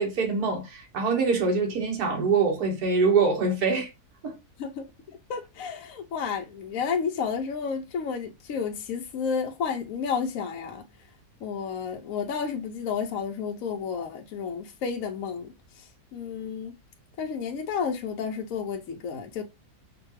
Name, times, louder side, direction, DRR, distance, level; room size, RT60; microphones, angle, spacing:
voice 1, 0.0-3.9 4.2-4.3, right 4 dB, 75° right, 1.5 m, -24 dB
voice 2, 4.6-10.8 11.4-16.8 17.2-19.4, left 6 dB, 70° left, 0.9 m, -31 dB
4.8 x 2.3 x 3.0 m
omnidirectional pair, 1.7 m